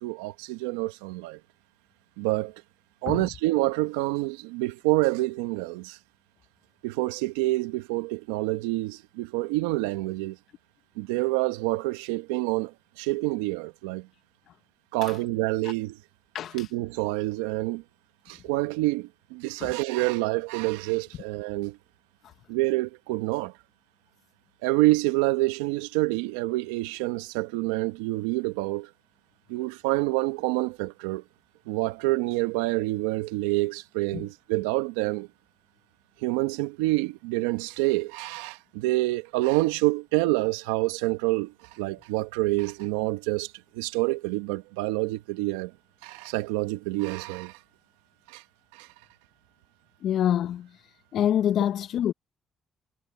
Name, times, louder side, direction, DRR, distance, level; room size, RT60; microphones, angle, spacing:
voice 1, 0.0-1.4 2.2-2.5 3.0-6.0 6.8-10.4 11.0-12.7 13.0-14.1 14.9-15.9 16.5-17.8 18.3-21.8 22.5-23.5 24.6-28.9 29.5-31.2 31.7-35.3 36.2-41.5 41.8-43.5 43.8-45.7 46.0-47.5 48.3-48.4 48.8-48.9, right 20 dB, 90° right, 1.4 m, -27 dB
voice 2, 16.3-16.7 34.1-34.3 50.0-50.7 51.1-52.1, left 10 dB, 70° left, 0.9 m, -26 dB
hypercardioid pair, 45°, 0 cm